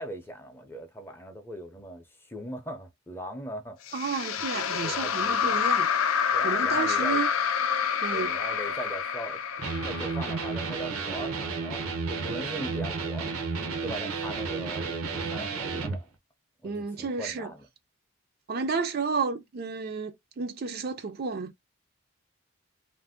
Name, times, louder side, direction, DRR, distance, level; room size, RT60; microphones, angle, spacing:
voice 1, 0.0-3.8 4.4-4.5 4.7-5.6 6.3-7.2 8.1-9.4 9.9-13.3 13.8-16.1 16.6-17.7, right 1 dB, 10° left, 0.5 m, -40 dB
sound 1, 3.9-11.2, left 7 dB, 80° left, 0.5 m, -28 dB
voice 2, 3.9-5.9 6.4-7.3 8.0-8.3 16.6-17.5 18.5-21.6, right 5 dB, 45° right, 0.4 m, -31 dB
Electric guitar, 9.6-16.0, right 4 dB, 80° right, 0.6 m, -32 dB
2.5 x 2.1 x 3.5 m
head